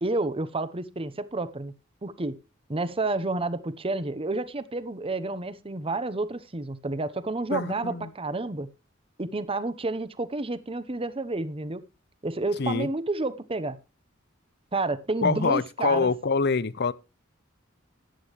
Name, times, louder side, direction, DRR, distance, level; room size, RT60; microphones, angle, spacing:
voice 1, 0.0-1.7 2.0-2.4 2.7-8.7 9.2-11.8 12.2-13.8 14.7-16.1, right 2 dB, 30° right, 0.9 m, -30 dB
voice 2, 7.5-8.1 12.6-12.9 15.2-16.9, left 4 dB, 55° left, 0.6 m, -25 dB
14.0 x 11.0 x 3.2 m
head